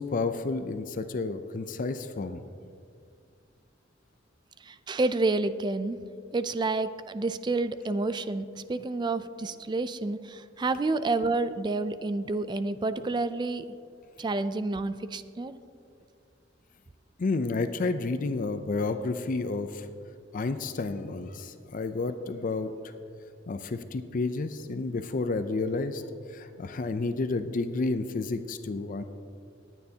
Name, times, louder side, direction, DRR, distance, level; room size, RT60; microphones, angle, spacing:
voice 1, 0.0-2.4 17.2-19.9 20.3-22.7 23.5-26.0 26.3-29.0, left 3 dB, 45° left, 9 dB, 0.4 m, -30 dB
voice 2, 4.6-6.0 6.3-13.6 14.2-15.6, right 3 dB, 25° right, 13 dB, 0.3 m, -29 dB
19.5 x 9.1 x 2.8 m, 2.3 s
head